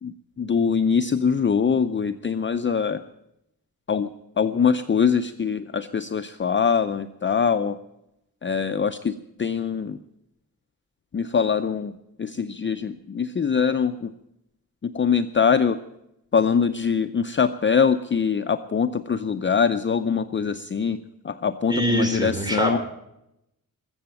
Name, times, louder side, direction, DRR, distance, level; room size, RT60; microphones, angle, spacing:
voice 1, 0.0-3.0 3.9-4.1 4.4-7.8 8.4-10.0 11.1-14.1 14.8-15.8 16.3-21.0 21.2-22.8, left 6 dB, 30° left, 9 dB, 0.6 m, -23 dB
voice 2, 21.7-22.8, equal, 10° right, 4 dB, 3.8 m, -23 dB
20.5 x 7.9 x 8.9 m, 0.84 s
wide cardioid pair, 115°, 36 cm